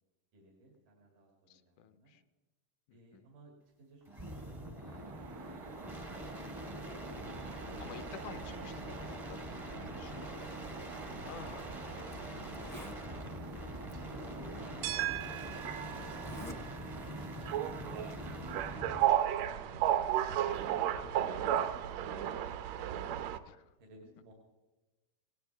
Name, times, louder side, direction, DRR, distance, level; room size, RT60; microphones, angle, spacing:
voice 1, 0.3-2.2 2.9-5.6 9.9-10.6 14.1-17.1 17.7-20.4 23.8-24.3, right 1 dB, 90° right, -1 dB, 4.1 m, -59 dB
voice 2, 1.5-2.2 2.9-3.2 7.8-9.4 9.8-10.3 11.2-11.7 12.0-12.7 14.5-14.7 21.2-21.6 23.5-23.7, left 9 dB, 80° left, 12 dB, 1.9 m, -52 dB
sound 1, 4.1-19.1 20.9-21.3, right 1 dB, 35° right, 0.4 m, -44 dB
sound 2, 5.1-23.4, right 11 dB, 75° right, 1.7 m, -37 dB
Zipper (clothing), 11.5-11.6 12.1-12.2 12.5-13.0 13.9-14.0 14.9-15.0 16.1-16.6 17.0-17.3, left 1 dB, 20° left, 0.5 m, -47 dB
18.5 x 18.5 x 3.4 m, 1.1 s
omnidirectional pair, 3.7 m